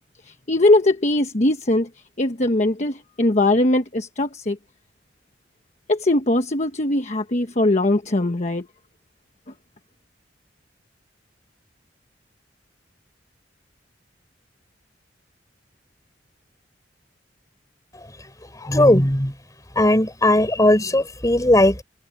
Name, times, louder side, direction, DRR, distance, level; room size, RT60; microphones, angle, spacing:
voice 1, 0.3-1.9 2.2-4.6 5.9-8.7, left 2 dB, 40° left, 1.2 m, -20 dB
voice 2, 17.9-19.4 19.7-21.8, left 1 dB, 20° left, 3.9 m, -18 dB
head